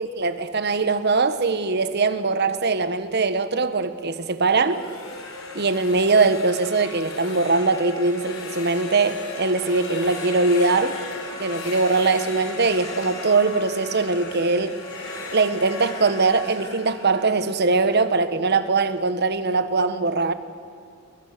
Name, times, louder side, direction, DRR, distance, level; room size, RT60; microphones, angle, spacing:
voice 1, 0.0-4.8 5.5-11.0 11.4-14.8 15.3-20.3, right 3 dB, 55° right, 11 dB, 1.3 m, -21 dB
sound 1, 4.5-18.3, left 3 dB, 80° left, 4.3 m, -36 dB
28.0 x 22.0 x 6.8 m, 2.5 s
head